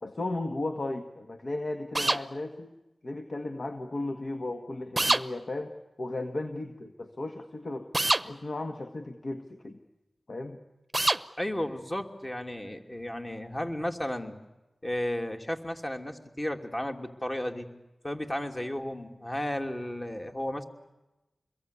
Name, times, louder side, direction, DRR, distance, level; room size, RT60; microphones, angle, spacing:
voice 1, 0.0-2.7 3.0-7.9 8.2-9.8 10.3-10.6, left 2 dB, 60° left, 6 dB, 1.8 m, -35 dB
sound 1, 1.9-2.2 5.0-5.2 7.9-8.2 10.9-11.2, right 2 dB, 30° right, 0.8 m, -24 dB
voice 2, 11.4-14.4 14.8-17.7 18.0-20.6, left 1 dB, 25° left, 3 dB, 3.0 m, -33 dB
27.0 x 22.0 x 8.5 m, 1.0 s
cardioid pair, 45°, 0 cm